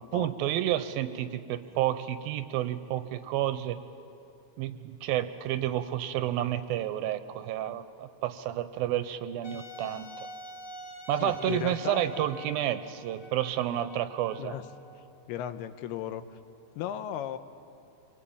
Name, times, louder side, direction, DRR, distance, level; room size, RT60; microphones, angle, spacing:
voice 1, 0.1-3.8 4.6-10.3 11.1-14.5, right 12 dB, 75° right, 11 dB, 2.4 m, -30 dB
Wind instrument woodwind instrument, 9.4-15.1, equal, 65° left, 2.8 m, -46 dB
voice 2, 11.2-12.4 14.4-14.6 15.3-16.2 16.8-17.4, left 10 dB, 85° left, 10 dB, 2.9 m, -36 dB
27.5 x 23.5 x 8.7 m, 2.7 s
omnidirectional pair, 4.5 m